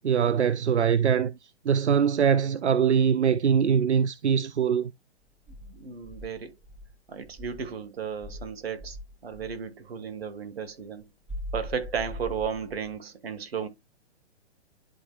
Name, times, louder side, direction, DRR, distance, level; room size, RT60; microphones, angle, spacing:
voice 1, 0.0-1.3 1.7-4.9, right 7 dB, 90° right, 0.5 m, -22 dB
Insect, 5.5-7.7 8.2-9.6 11.3-12.9, left 1 dB, 5° right, 2.6 m, -40 dB
voice 2, 5.7-6.5 7.1-9.0 9.2-11.1 11.5-13.7, right 6 dB, 65° right, 1.5 m, -34 dB
11.0 x 4.4 x 2.2 m
figure-of-eight pair, 120°, 33 cm